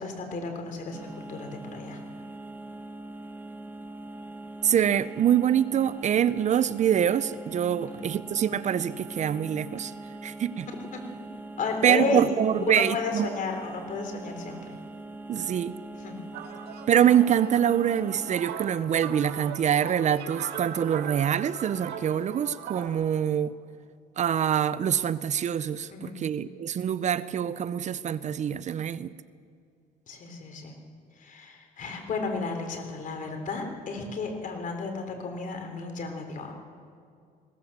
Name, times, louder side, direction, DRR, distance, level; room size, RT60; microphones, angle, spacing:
voice 1, 0.0-2.0 7.9-8.1 10.7-11.0 11.6-12.4 12.7-14.7 15.9-16.1 25.9-26.2 30.1-30.7 31.2-36.5, left 4 dB, 50° left, 4 dB, 3.8 m, -33 dB
sound 1, 0.9-18.3, right 2 dB, 10° right, 0.9 m, -42 dB
voice 2, 4.6-9.9 10.2-10.7 11.8-13.3 15.3-15.8 16.9-23.5 24.2-29.1, right 9 dB, 45° right, 16 dB, 0.6 m, -25 dB
sound 2, 16.3-22.9, right 8 dB, 75° right, 2.2 m, -39 dB
20.5 x 17.5 x 7.3 m, 2.3 s
cardioid pair, 110°, 17 cm